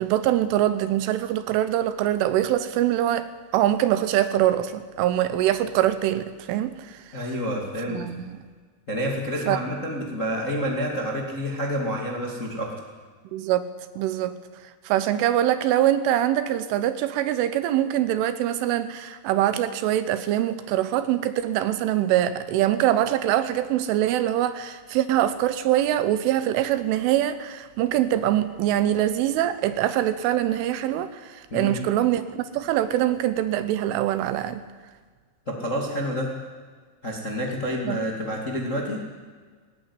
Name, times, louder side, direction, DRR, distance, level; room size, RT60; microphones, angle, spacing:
voice 1, 0.0-3.3 3.5-7.0 7.9-8.3 9.5-9.6 13.3-13.6 14.0-14.3 14.9-34.6 37.9-38.0, right 12 dB, 80° right, 12 dB, 3.2 m, -23 dB
voice 2, 7.1-8.0 8.9-12.9 31.5-31.8 35.4-36.3 37.0-39.0, equal, 30° left, 0 dB, 1.5 m, -28 dB
20.0 x 17.5 x 9.9 m, 1.5 s
omnidirectional pair, 6.0 m